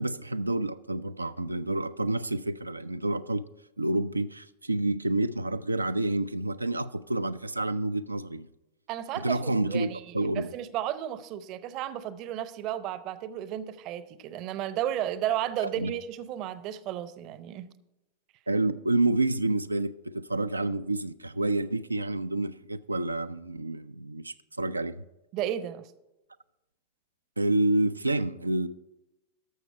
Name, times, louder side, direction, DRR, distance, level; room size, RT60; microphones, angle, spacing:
voice 1, 0.0-3.4 3.8-8.5 9.2-9.9 10.1-10.5 15.8-15.9 18.5-25.0 27.4-28.7, right 2 dB, 85° right, 0.3 m, -28 dB
voice 2, 8.9-17.7 25.3-25.9, right 11 dB, 40° right, 0.6 m, -33 dB
13.0 x 6.4 x 4.5 m
figure-of-eight pair, 90°, 0 cm